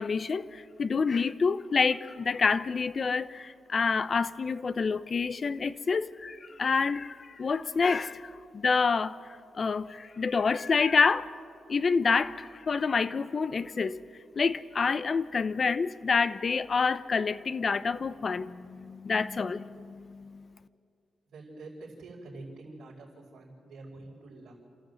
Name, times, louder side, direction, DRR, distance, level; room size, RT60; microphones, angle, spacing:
voice 1, 0.0-9.2 9.5-11.3 11.7-14.0 14.4-20.5, left 5 dB, 45° left, 0.8 m, -28 dB
voice 2, 21.3-24.5, right 2 dB, 90° right, 5.1 m, -46 dB
29.0 x 14.0 x 7.9 m
cardioid pair, 95°, 0 cm